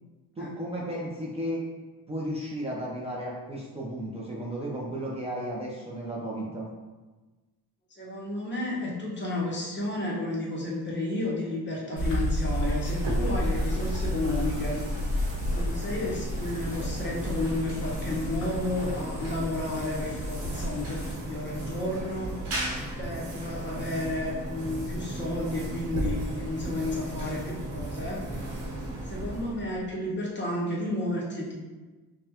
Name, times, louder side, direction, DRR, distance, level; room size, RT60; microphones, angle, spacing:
voice 1, 0.4-1.6 2.1-6.7, right 1 dB, 15° right, -5 dB, 0.6 m, -34 dB
voice 2, 8.0-14.8 15.5-22.3 23.0-28.2 29.1-31.5, left 2 dB, 30° left, -4 dB, 1.0 m, -32 dB
sound 1, 12.0-21.1, left 1 dB, 45° left, 1.3 m, -32 dB
sound 2, 12.5-29.9, right 1 dB, 90° right, 1.3 m, -35 dB
5.2 x 2.3 x 2.9 m, 1.2 s
cardioid pair, 120°, 39 cm